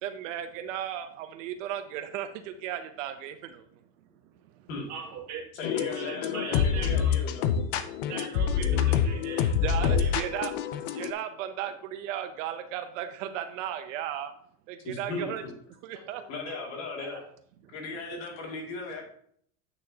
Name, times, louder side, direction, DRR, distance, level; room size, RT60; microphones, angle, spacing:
voice 1, 0.0-3.4 9.6-10.5 11.0-14.3 14.7-15.4 15.8-16.2, right 10 dB, 55° right, 9 dB, 0.7 m, -35 dB
voice 2, 4.9-5.4 5.7-7.1 8.0-10.4 16.1-16.6 17.0-17.2 18.1-18.2, right 6 dB, 35° right, -1 dB, 1.9 m, -41 dB
voice 3, 5.5-7.4 14.8-15.5 16.3-17.2 17.7-19.0, left 3 dB, 60° left, 0 dB, 2.5 m, -37 dB
sound 1, 5.6-11.1, left 7 dB, 40° left, 0.4 m, -26 dB
8.7 x 6.3 x 2.8 m, 0.65 s
supercardioid pair, 155°, 45 cm